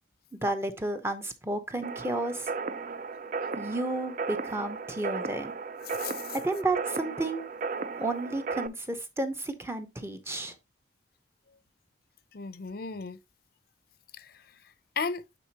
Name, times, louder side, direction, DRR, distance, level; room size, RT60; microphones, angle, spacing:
voice 1, 0.4-2.5 3.5-5.5 6.4-7.4 8.0-10.5, right 2 dB, 15° right, 0.7 m, -32 dB
sound 1, 1.8-8.7, right 4 dB, 45° right, 0.4 m, -35 dB
voice 2, 5.8-6.4 12.3-13.2 14.1-14.6 15.0-15.3, left 5 dB, 55° left, 0.5 m, -36 dB
9.1 x 4.0 x 2.9 m
head